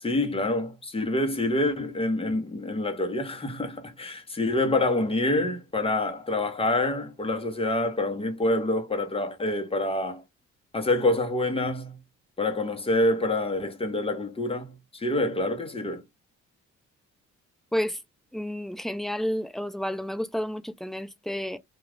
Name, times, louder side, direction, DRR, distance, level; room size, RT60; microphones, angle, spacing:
voice 1, 0.0-10.2 10.7-12.0 12.4-16.0, left 2 dB, 20° left, 0.9 m, -27 dB
voice 2, 18.3-21.6, equal, ahead, 0.3 m, -30 dB
2.4 x 2.4 x 3.3 m
cardioid pair, 90°, 30 cm